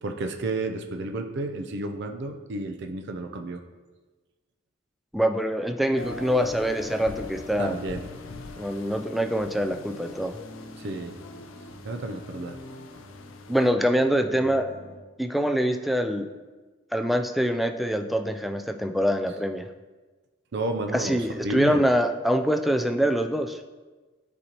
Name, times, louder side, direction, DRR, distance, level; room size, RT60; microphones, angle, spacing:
voice 1, 0.0-3.6 7.6-8.0 10.8-11.1 11.8-12.6 20.5-21.8, right 2 dB, 60° right, 6 dB, 0.5 m, -31 dB
voice 2, 5.1-7.8 8.6-10.4 13.5-14.7 15.2-16.3 16.9-19.7 20.9-23.6, equal, ahead, 6 dB, 0.3 m, -24 dB
sound 1, 6.0-13.7, left 3 dB, 85° left, 0.5 m, -42 dB
sound 2, 9.7-15.0, equal, 65° left, 1.0 m, -45 dB
9.7 x 4.2 x 2.9 m, 1.3 s
head